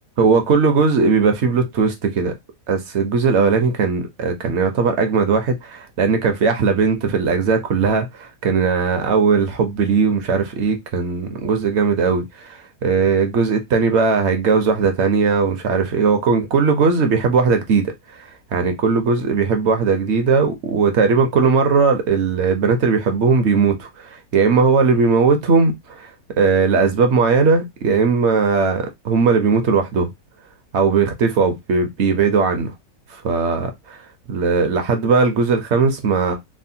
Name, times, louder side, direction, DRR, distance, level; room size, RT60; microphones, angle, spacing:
voice 1, 0.2-2.3 2.7-17.9 18.5-26.1 26.4-30.1 30.7-32.7 33.2-34.0 34.3-36.4, right 5 dB, 65° right, 0.7 m, -18 dB
3.3 x 2.1 x 2.6 m
omnidirectional pair, 1.6 m